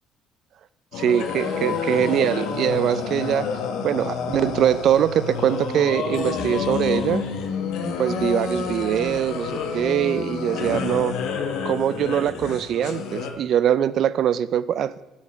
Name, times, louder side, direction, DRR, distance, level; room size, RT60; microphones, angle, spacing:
sound 1, 0.9-13.3, left 6 dB, 80° left, 1.3 m, -29 dB
voice 1, 1.0-3.5 3.8-7.2 8.0-11.2 11.6-15.0, right 10 dB, 55° right, 17 dB, 0.4 m, -22 dB
8.4 x 5.0 x 6.7 m, 1.1 s
cardioid pair, 135°, 0 cm